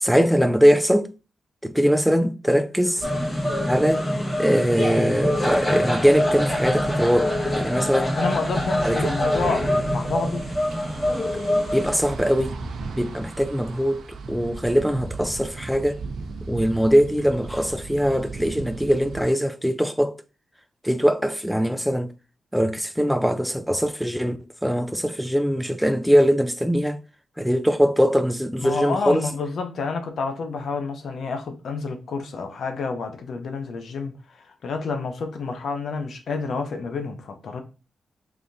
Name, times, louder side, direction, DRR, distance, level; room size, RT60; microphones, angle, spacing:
voice 1, 0.0-1.1 1.6-3.1 3.7-4.0 4.4-8.1 8.8-9.1 11.7-12.5 12.9-16.0 16.4-20.2 20.8-22.1 22.5-27.0 27.4-29.2, equal, ahead, 0.5 m, -21 dB
sound 1, 3.0-12.0, left 1 dB, 20° left, 1.4 m, -24 dB
sound 2, 3.0-19.2, right 4 dB, 85° right, 0.7 m, -37 dB
voice 2, 8.0-10.5 28.6-37.6, left 4 dB, 80° left, 0.8 m, -29 dB
4.9 x 3.4 x 2.6 m
cardioid pair, 70°, 0 cm